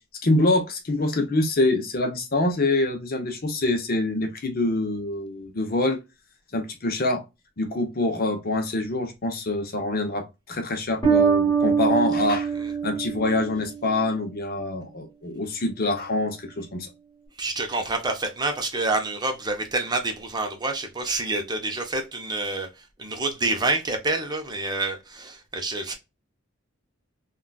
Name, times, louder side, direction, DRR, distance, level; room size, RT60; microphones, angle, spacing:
voice 1, 0.2-6.0 6.5-7.2 7.6-12.5 12.8-16.9, left 2 dB, 45° left, 0.7 m, -25 dB
Bass guitar, 11.0-14.0, right 6 dB, 20° left, 1.3 m, -23 dB
voice 2, 17.4-22.7 23.0-25.9, right 2 dB, 20° right, 0.6 m, -27 dB
3.7 x 2.3 x 2.3 m
head